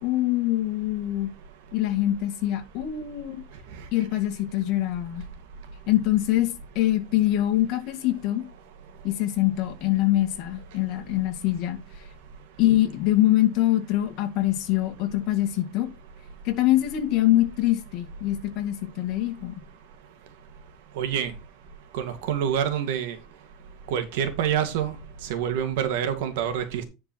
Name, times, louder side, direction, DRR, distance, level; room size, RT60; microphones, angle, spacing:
voice 1, 0.0-1.3 1.7-3.4 3.9-5.2 5.9-8.4 9.0-11.8 12.6-15.9 16.4-19.5, left 14 dB, 45° left, 2.1 m, -24 dB
voice 2, 21.0-21.3 21.9-23.2 23.9-25.0 25.3-26.8, right 9 dB, 70° right, 2.1 m, -26 dB
10.5 x 4.6 x 4.5 m
supercardioid pair, 155°, 0 cm